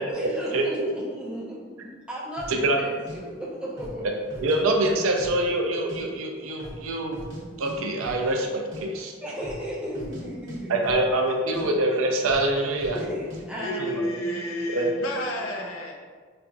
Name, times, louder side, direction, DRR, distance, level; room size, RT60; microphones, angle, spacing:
voice 1, 0.0-4.0 9.2-10.8 12.9-14.8 15.4-15.6, equal, 5° right, 0.6 m, -35 dB
voice 2, 0.5-0.9 2.5-2.8 4.4-7.2 7.6-9.1 10.7-13.0 13.8-14.1 14.7-14.9, right 2 dB, 85° right, 0.5 m, -25 dB
sound 1, 2.4-2.6 3.1-3.2 3.7-4.0 4.3-4.9 5.2-6.0 6.3-6.4 6.6-7.4 7.7-7.8 8.0-8.2 8.5-8.8 9.3-9.6 9.9-10.2 10.5-11.3 11.5-11.7 12.2-12.5 12.8-13.1 13.3-13.4, equal, 65° right, 1.0 m, -40 dB
voice 3, 13.6-15.9, equal, 85° left, 0.6 m, -31 dB
4.1 x 2.5 x 2.3 m
head